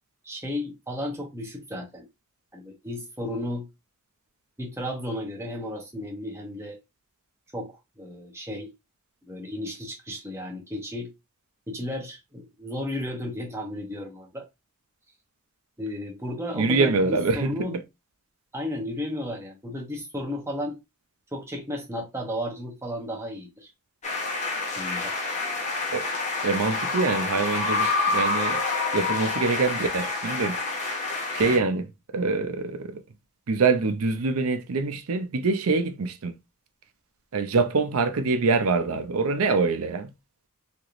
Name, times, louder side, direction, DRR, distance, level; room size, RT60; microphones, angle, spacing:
voice 1, 0.2-2.1 2.5-3.7 4.6-6.8 7.5-8.7 9.3-11.1 11.7-14.4 15.8-17.8 18.5-20.8 21.3-23.7 24.8-25.1, left 1 dB, 10° right, 0.8 m, -33 dB
voice 2, 16.5-17.8 25.9-26.1 26.4-28.6 28.9-30.6 31.3-33.0 33.5-36.3 37.3-40.1, right 4 dB, 70° right, 0.5 m, -25 dB
sound 1, 24.0-31.6, left 3 dB, 30° left, 0.9 m, -27 dB
3.3 x 2.9 x 2.5 m
head